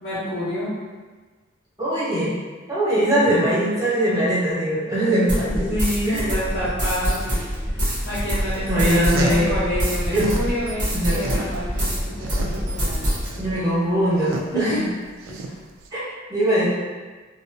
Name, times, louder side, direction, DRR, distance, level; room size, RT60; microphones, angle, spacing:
voice 1, 0.0-0.7 5.4-13.1 14.7-14.8 15.3-15.6, equal, 60° left, -13 dB, 0.7 m, -29 dB
voice 2, 1.8-2.3 2.7-5.8 6.0-6.3 8.7-9.6 10.1-10.3 10.9-11.3 13.4-14.8 15.9-16.0 16.3-16.7, right 1 dB, 20° right, -10 dB, 0.9 m, -21 dB
sound 1, 5.3-12.0 12.3-13.3, equal, 40° right, 0.6 m, -25 dB
sound 2, 6.5-13.6, equal, 5° left, 0.6 m, -35 dB
sound 3, 9.1-10.5 10.9-15.9, right 2 dB, 70° right, 0.3 m, -33 dB
2.6 x 2.0 x 2.5 m, 1.4 s
head